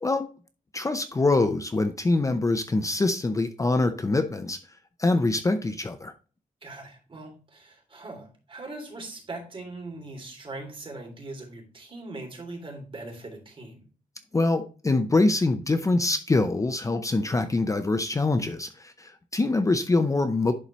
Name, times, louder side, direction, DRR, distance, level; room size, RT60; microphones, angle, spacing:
voice 1, 0.7-4.6 5.0-6.1 14.3-20.5, left 2 dB, 20° left, 9 dB, 0.6 m, -24 dB
voice 2, 6.6-13.8, right 2 dB, 40° right, 2 dB, 3.1 m, -40 dB
11.0 x 4.2 x 3.0 m, 0.36 s
wide cardioid pair, 140°, 14 cm